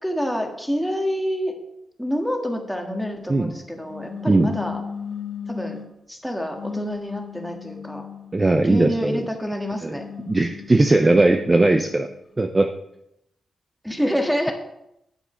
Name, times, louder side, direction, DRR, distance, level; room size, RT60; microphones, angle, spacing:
voice 1, 0.0-1.5 2.0-4.8 5.5-5.8 6.1-8.0 8.6-10.1 13.8-14.5, equal, ahead, 3 dB, 1.6 m, -27 dB
sound 1, 3.9-5.9 6.5-9.2 9.8-12.1, left 7 dB, 40° left, 1.4 m, -36 dB
voice 2, 8.3-9.2 9.8-9.9 10.3-12.1 12.4-12.7, right 2 dB, 20° right, 7 dB, 0.5 m, -18 dB
9.3 x 7.0 x 5.6 m, 0.82 s
wide cardioid pair, 120°, 0 cm